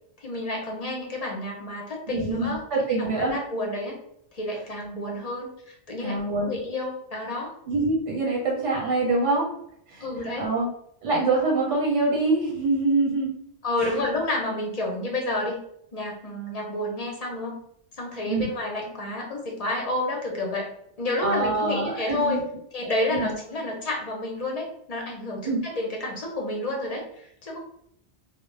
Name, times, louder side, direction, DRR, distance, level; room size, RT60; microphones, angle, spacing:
voice 1, 0.2-2.6 2.9-4.0 4.3-7.6 10.0-10.5 13.6-15.6 15.9-17.6 18.0-20.7 21.0-22.4 22.7-27.6, left 2 dB, 45° left, -1 dB, 0.6 m, -30 dB
voice 2, 2.1-3.4 6.0-6.5 7.7-9.5 9.9-10.0 10.4-10.7 11.0-13.4 18.2-18.5 21.2-22.4 23.1-23.3 25.4-25.6, right 3 dB, 90° right, -3 dB, 1.2 m, -25 dB
2.2 x 2.1 x 3.1 m, 0.72 s
omnidirectional pair, 1.2 m